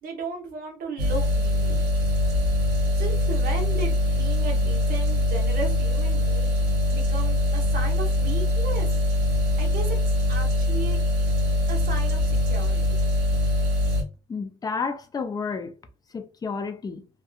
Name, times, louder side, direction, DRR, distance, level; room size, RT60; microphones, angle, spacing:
voice 1, 0.0-1.8 3.0-6.5 6.9-9.0 9.6-10.0 10.3-11.0 11.7-13.0, right 3 dB, 55° right, 1.0 m, -35 dB
sound 1, 1.0-14.0, left 1 dB, 80° right, 1.0 m, -23 dB
voice 2, 14.3-15.7 16.1-17.1, left 5 dB, 20° left, 0.4 m, -31 dB
2.7 x 2.2 x 2.4 m
cardioid pair, 110°, 17 cm